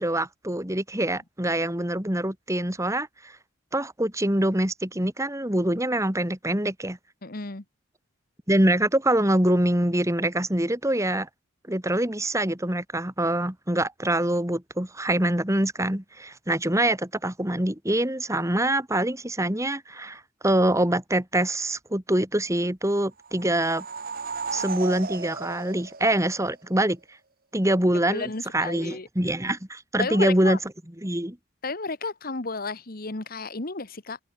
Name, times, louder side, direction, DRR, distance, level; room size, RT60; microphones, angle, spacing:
voice 1, 0.0-3.3 3.7-7.0 8.5-11.3 11.7-23.8 24.5-27.0 27.5-30.6 31.0-31.4, right 1 dB, 15° right, 2.5 m, -25 dB
voice 2, 7.2-7.6 28.1-29.1 30.0-30.6 31.6-34.2, left 3 dB, 45° left, 1.5 m, -32 dB
sound 1, 23.2-26.8, right 4 dB, 45° right, 1.6 m, -35 dB
open air
head